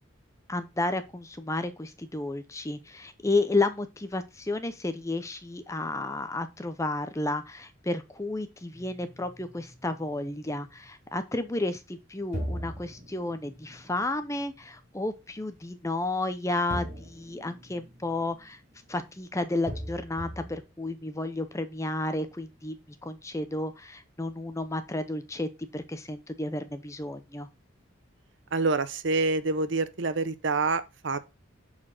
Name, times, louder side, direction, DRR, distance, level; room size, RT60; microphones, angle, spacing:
voice 1, 0.5-18.6 18.9-22.8 23.0-27.5, left 2 dB, 15° left, 0.5 m, -32 dB
sound 1, 8.7-10.8 12.3-14.9 16.7-19.0 19.7-20.6, equal, 35° right, 2.0 m, -40 dB
voice 2, 28.5-31.2, right 3 dB, 60° right, 0.7 m, -27 dB
7.4 x 4.2 x 4.3 m
head